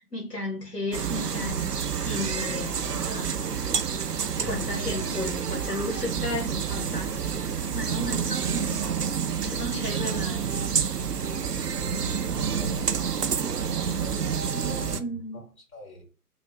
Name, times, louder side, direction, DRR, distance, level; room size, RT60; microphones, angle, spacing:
voice 1, 0.0-1.7 2.0-3.8 4.4-8.8 9.4-10.7 14.5-15.4, left 1 dB, 85° left, -2 dB, 1.7 m, -34 dB
sound 1, 0.9-15.0, right 7 dB, 80° right, 0.6 m, -28 dB
voice 2, 4.3-5.0 11.8-12.7 14.6-16.0, right 2 dB, 60° left, -1 dB, 2.0 m, -39 dB
3.7 x 2.5 x 4.2 m, 0.34 s
figure-of-eight pair, 135°, 47 cm